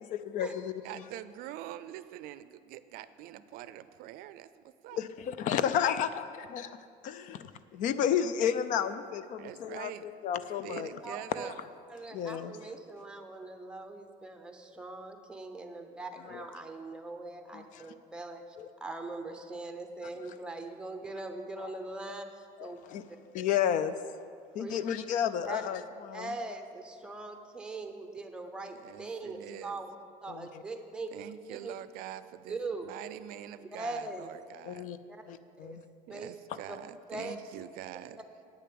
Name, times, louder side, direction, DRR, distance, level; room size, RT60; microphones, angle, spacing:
voice 1, 0.3-1.0 4.9-11.0 11.4-11.5 12.1-12.5 16.3-16.5 17.5-17.9 18.6-18.7 21.6-21.7 22.6-23.0 23.3-24.0 24.5-26.4 30.3-30.6 34.6-35.0 35.3-35.8, left 9 dB, 55° left, 13 dB, 0.4 m, -32 dB
voice 2, 0.8-5.0 9.4-10.1 10.6-11.6 28.6-29.8 31.1-34.9 36.1-38.2, right 13 dB, 70° right, 14 dB, 0.4 m, -45 dB
voice 3, 11.0-11.5 11.9-18.4 18.8-22.8 23.1-23.2 24.6-24.8 25.5-25.6 26.1-29.9 30.2-31.1 31.5-31.7 32.5-32.9 33.7-34.3 35.6-35.8 36.1-36.3 36.7-36.8 37.1-37.4, right 2 dB, 5° right, 5 dB, 0.7 m, -41 dB
9.2 x 6.8 x 7.7 m, 2.3 s
cardioid pair, 160°, 15 cm